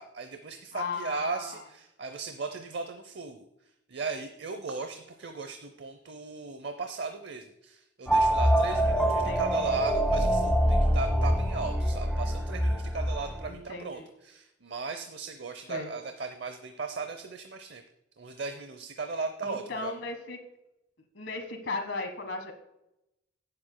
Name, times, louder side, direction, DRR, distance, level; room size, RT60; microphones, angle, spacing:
voice 1, 0.0-17.8 18.2-19.9, right 4 dB, 60° right, 7 dB, 0.7 m, -37 dB
voice 2, 0.7-1.6 9.0-9.7 13.5-14.1 15.7-15.9 19.4-20.4 21.1-22.5, left 3 dB, 75° left, 5 dB, 1.4 m, -36 dB
sound 1, 8.1-13.5, right 1 dB, ahead, 1.0 m, -25 dB
17.5 x 7.7 x 2.2 m, 0.88 s
head